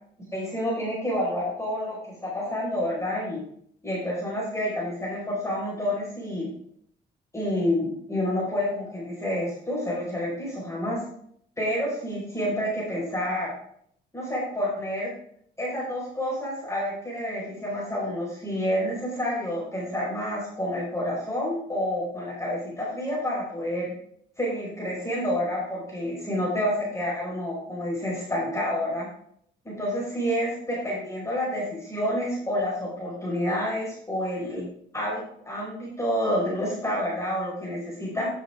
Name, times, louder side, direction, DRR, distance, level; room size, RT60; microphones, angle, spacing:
voice 1, 0.3-3.4 3.8-6.5 7.3-11.0 11.6-13.5 14.1-15.1 15.6-23.9 24.4-29.1 29.6-34.6 34.9-38.3, equal, 15° left, -4 dB, 5.2 m, -29 dB
10.5 x 9.8 x 3.7 m, 0.66 s
cardioid pair, 90°, 20 cm